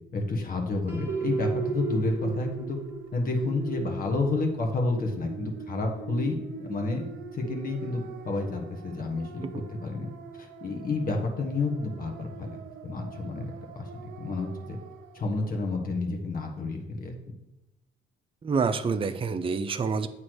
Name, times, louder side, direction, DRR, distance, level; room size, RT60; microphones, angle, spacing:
voice 1, 0.1-2.8 3.1-7.0 7.3-13.9 14.2-14.8 15.1-17.1, left 3 dB, 45° left, 2 dB, 1.3 m, -30 dB
Piano, 0.9-6.7, right 3 dB, 10° right, 1.4 m, -50 dB
sound 1, 1.1-15.3, right 6 dB, 85° right, 0.6 m, -39 dB
voice 2, 18.4-20.1, right 5 dB, 25° right, 9 dB, 0.5 m, -27 dB
7.7 x 3.1 x 6.2 m, 0.96 s
cardioid pair, 90°, 20 cm